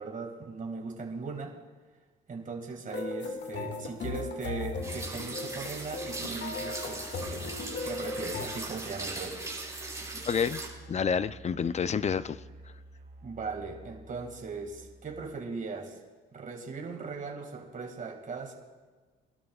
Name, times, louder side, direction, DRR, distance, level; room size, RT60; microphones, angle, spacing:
voice 1, 0.0-1.6 2.3-7.5 7.8-9.4 13.2-16.0 16.3-18.5, right 4 dB, 40° right, 2 dB, 2.1 m, -39 dB
sound 1, 2.9-8.5, left 3 dB, 60° left, 2.1 m, -37 dB
sound 2, 4.8-10.7, right 2 dB, 15° right, 4.8 m, -39 dB
Musical instrument, 5.4-15.5, right 2 dB, 55° right, 3.1 m, -51 dB
voice 2, 10.2-10.6 10.9-12.4, left 6 dB, 35° left, 15 dB, 0.5 m, -29 dB
24.0 x 12.5 x 2.4 m, 1.4 s
cardioid pair, 90°, 20 cm